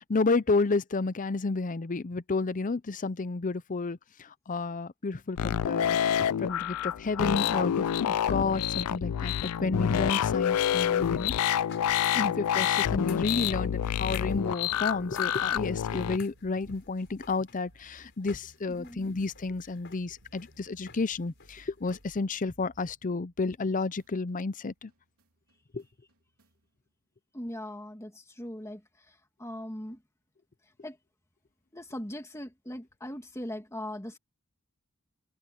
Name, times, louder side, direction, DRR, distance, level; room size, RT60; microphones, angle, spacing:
voice 1, 0.1-11.3 12.1-24.9 25.7-25.8, left 3 dB, 35° left, 0.6 m, -31 dB
sound 1, 5.4-16.2, left 9 dB, 85° left, 0.4 m, -28 dB
sound 2, 10.0-22.1, left 5 dB, 55° left, 4.8 m, -52 dB
sound 3, 11.6-23.7 24.0-26.7, equal, 85° right, 3.7 m, -62 dB
voice 2, 18.7-19.1 27.3-30.0 30.8-31.0 31.7-34.2, left 1 dB, 15° left, 2.2 m, -40 dB
head